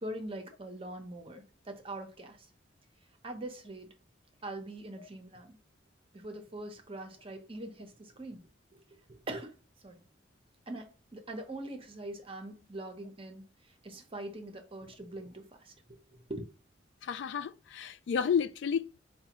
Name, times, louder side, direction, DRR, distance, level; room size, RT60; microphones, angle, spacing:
voice 1, 0.0-2.4 3.2-3.9 4.4-5.6 6.1-8.8 9.3-9.5 9.8-10.0 10.7-13.4 13.8-15.7 16.3-16.4, right 1 dB, 30° right, 0.7 m, -42 dB
voice 2, 17.0-19.0, left 7 dB, 70° left, 0.3 m, -31 dB
4.6 x 2.2 x 2.9 m
head